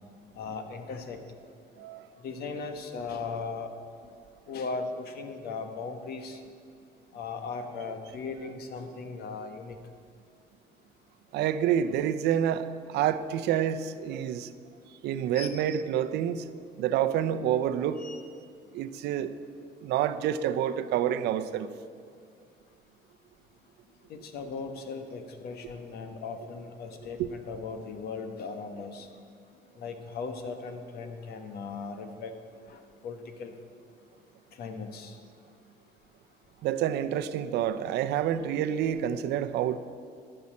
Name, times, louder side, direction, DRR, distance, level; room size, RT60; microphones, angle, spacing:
voice 1, 0.4-1.2 2.2-3.7 4.5-6.4 7.1-9.8 15.3-15.7 18.0-18.2 24.1-29.1 29.8-32.3 32.7-33.5 34.6-35.2, left 4 dB, 70° left, 7 dB, 1.3 m, -38 dB
voice 2, 1.8-2.1 11.3-14.5 15.0-16.5 16.8-18.0 18.7-19.3 19.8-21.7 36.6-39.8, right 10 dB, 80° right, 11 dB, 0.6 m, -28 dB
13.5 x 5.7 x 8.6 m, 2.2 s
cardioid pair, 110°, 17 cm